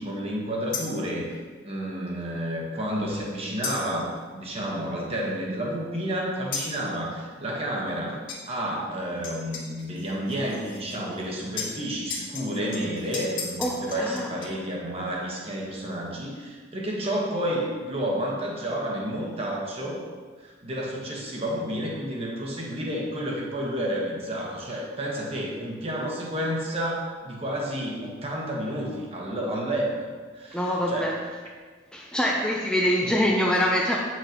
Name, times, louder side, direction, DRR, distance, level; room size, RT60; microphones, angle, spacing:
voice 1, 0.0-1.4 1.6-8.2 8.5-20.0 20.4-30.0 30.3-31.1 33.0-33.1, equal, 30° right, -2 dB, 1.3 m, -30 dB
sound 1, 0.7-1.1 3.6-4.0 6.5-6.8 8.3-8.4 9.2-11.3 11.6-14.5, left 5 dB, 85° left, 1.7 m, -35 dB
voice 2, 13.6-14.3 30.5-31.2 31.9-34.0, equal, 5° left, -3 dB, 0.5 m, -24 dB
8.8 x 6.0 x 2.9 m, 1.5 s
head